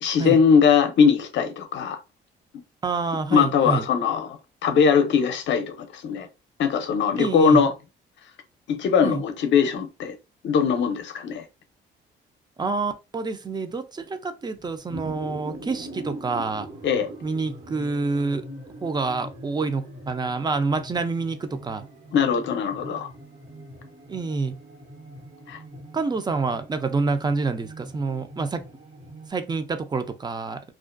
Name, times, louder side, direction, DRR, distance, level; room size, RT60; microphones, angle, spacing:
voice 1, 0.0-2.0 3.3-4.4 4.6-6.3 6.6-7.7 8.7-10.2 10.4-11.4 16.8-17.1 22.1-23.1 25.5-25.6, left 6 dB, 70° left, 0.6 m, -20 dB
voice 2, 2.8-3.9 7.2-7.7 9.0-9.2 12.6-16.7 17.2-18.5 18.8-21.8 24.1-24.6 25.9-28.6 29.3-30.7, right 4 dB, 20° right, 0.4 m, -27 dB
sound 1, 14.5-29.3, right 1 dB, 70° right, 1.2 m, -42 dB
2.4 x 2.1 x 2.4 m
cardioid pair, 90°, 20 cm